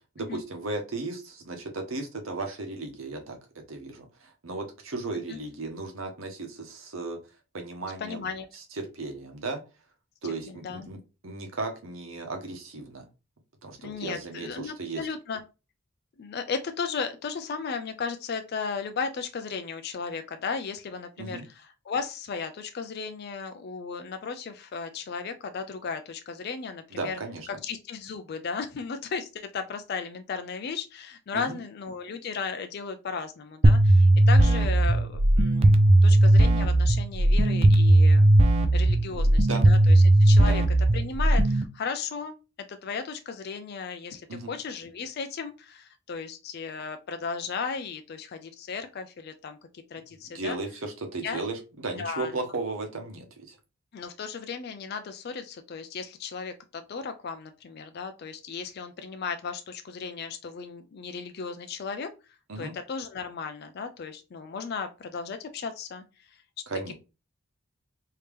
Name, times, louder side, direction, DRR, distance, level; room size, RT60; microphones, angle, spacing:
voice 1, 0.1-3.4 3.7-7.2 7.5-8.3 8.5-9.6 10.2-11.0 11.2-13.0 13.6-15.1 21.2-21.4 26.9-27.5 31.3-31.6 39.1-39.2 39.5-39.7 40.4-40.6 44.3-44.5 50.2-53.6 62.5-62.7 66.7-66.9, right 3 dB, 75° right, 4 dB, 1.0 m, -35 dB
voice 2, 8.0-8.5 10.5-10.9 13.8-15.4 16.2-27.2 27.5-38.3 38.7-40.6 40.9-42.3 42.7-44.2 44.5-49.6 49.9-50.6 51.2-51.4 52.0-52.3 53.9-62.1 62.6-66.0 66.3-66.4 66.9-67.0, left 5 dB, 50° left, 8 dB, 0.4 m, -35 dB
sound 1, 33.6-41.6, right 1 dB, 30° right, 0.3 m, -18 dB
3.3 x 2.8 x 3.3 m, 0.29 s
head